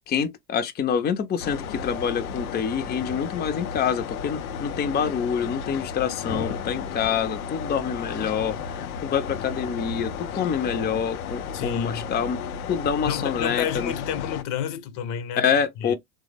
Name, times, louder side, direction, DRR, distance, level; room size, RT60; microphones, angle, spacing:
voice 1, 0.1-12.4 12.7-13.9 15.4-15.9, left 7 dB, 25° left, 0.5 m, -26 dB
sound 1, 1.4-14.4, left 7 dB, 90° left, 0.6 m, -33 dB
voice 2, 11.5-12.1 13.0-15.5 15.8-15.9, left 8 dB, 60° left, 0.8 m, -30 dB
3.3 x 2.1 x 3.3 m
hypercardioid pair, 75°, 42 cm